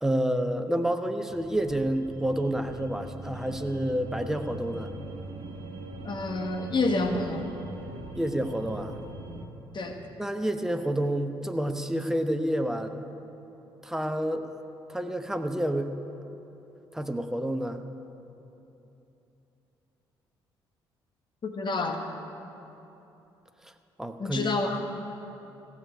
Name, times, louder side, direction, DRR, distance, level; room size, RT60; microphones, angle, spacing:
voice 1, 0.0-4.9 8.1-9.0 10.2-13.0 13.8-14.5 14.9-15.9 16.9-17.8 24.0-24.5, right 1 dB, 5° right, 7 dB, 0.9 m, -29 dB
sound 1, 1.3-9.5, right 2 dB, 45° right, 1.3 m, -41 dB
voice 2, 6.0-7.4 9.7-10.0 21.4-22.0 24.2-24.8, left 3 dB, 40° left, 4 dB, 1.3 m, -28 dB
15.5 x 6.8 x 9.4 m, 3.0 s
figure-of-eight pair, 45°, 12 cm